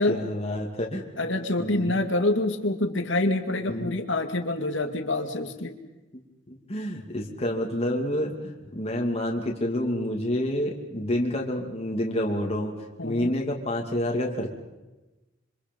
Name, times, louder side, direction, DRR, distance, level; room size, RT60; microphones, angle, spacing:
voice 1, 0.0-1.0 1.6-1.9 3.7-3.9 6.5-12.7 13.0-14.5, left 1 dB, 35° left, 0 dB, 2.5 m, -28 dB
voice 2, 1.2-5.7 13.0-13.3, left 2 dB, 75° left, 6 dB, 2.3 m, -26 dB
27.0 x 25.0 x 5.4 m, 1.1 s
head